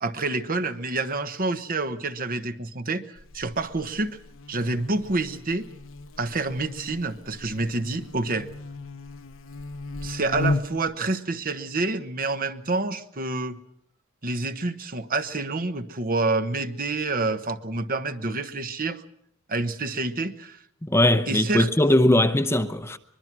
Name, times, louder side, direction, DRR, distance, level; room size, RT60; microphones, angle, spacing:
voice 1, 0.0-4.2 4.5-5.7 6.2-8.5 10.0-13.6 14.2-19.0 19.5-20.6 21.3-21.7, right 3 dB, 45° right, 1.2 m, -28 dB
Buzz, 3.2-10.9, left 3 dB, 65° left, 1.0 m, -35 dB
voice 2, 20.8-23.0, left 1 dB, 10° left, 0.8 m, -20 dB
24.0 x 22.0 x 6.1 m
head